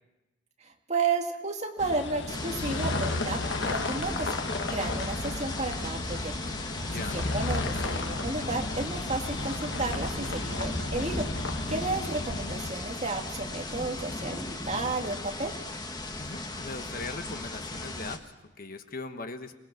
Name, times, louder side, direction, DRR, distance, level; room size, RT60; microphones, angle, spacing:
voice 1, 0.6-4.3 4.7-6.3 7.1-11.3 11.7-15.5, right 3 dB, 35° right, 2 dB, 2.3 m, -32 dB
sound 1, 1.8-12.7, left 3 dB, 65° left, 1.5 m, -34 dB
sound 2, 2.3-18.2, left 1 dB, 20° left, 1.5 m, -36 dB
voice 2, 6.8-7.2 16.2-19.6, left 3 dB, 45° left, 7 dB, 1.3 m, -40 dB
28.0 x 19.5 x 6.1 m, 1.0 s
head